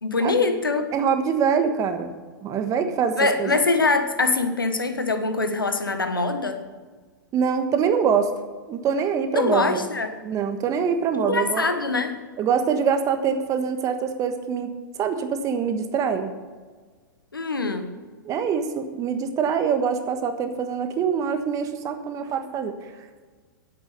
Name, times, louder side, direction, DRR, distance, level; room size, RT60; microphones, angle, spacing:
voice 1, 0.0-0.9 3.2-6.6 9.3-10.1 11.2-12.2 17.3-18.0, left 3 dB, 85° left, 8 dB, 1.3 m, -23 dB
voice 2, 0.9-2.1 2.4-3.6 7.3-8.3 8.7-9.8 10.2-11.7 12.4-16.3 18.2-22.7, right 6 dB, 30° right, 8 dB, 1.3 m, -24 dB
10.5 x 8.5 x 6.6 m, 1.5 s
figure-of-eight pair, 105°, 11 cm